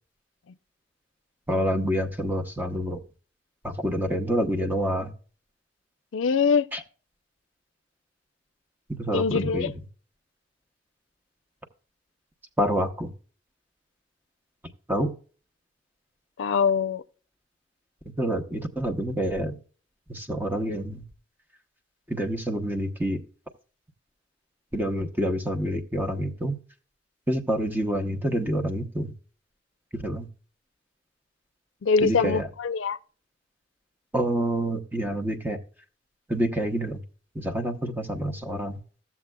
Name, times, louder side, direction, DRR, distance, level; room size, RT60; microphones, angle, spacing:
voice 1, 1.5-3.0 3.6-5.1 6.7-6.8 8.9-9.7 12.6-13.1 14.9-15.1 18.2-19.6 20.1-21.0 22.1-23.2 24.7-26.6 27.3-29.1 29.9-30.3 32.0-32.5 34.1-35.6 36.3-37.0 37.3-38.8, right 1 dB, 10° right, 0.8 m, -27 dB
voice 2, 6.1-6.7 9.1-9.7 16.4-17.0 31.8-33.0, left 5 dB, 85° left, 0.4 m, -23 dB
14.0 x 7.3 x 2.2 m
head